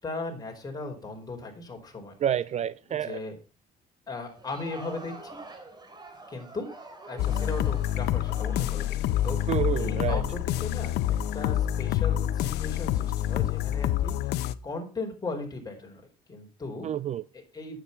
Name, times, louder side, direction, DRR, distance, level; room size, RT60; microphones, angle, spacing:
voice 1, 0.0-2.1 2.9-3.4 4.1-5.4 6.3-6.7 7.1-16.0 16.3-16.9 17.3-17.8, left 3 dB, 20° left, 4.7 m, -37 dB
voice 2, 2.2-3.2 9.5-10.2 16.8-17.2, right 10 dB, 40° right, 0.4 m, -28 dB
Crowd, 4.2-10.1, right 2 dB, 25° right, 3.0 m, -46 dB
sound 1, 7.2-14.5, left 11 dB, 85° left, 0.8 m, -27 dB
10.0 x 8.9 x 5.7 m
cardioid pair, 110°, 17 cm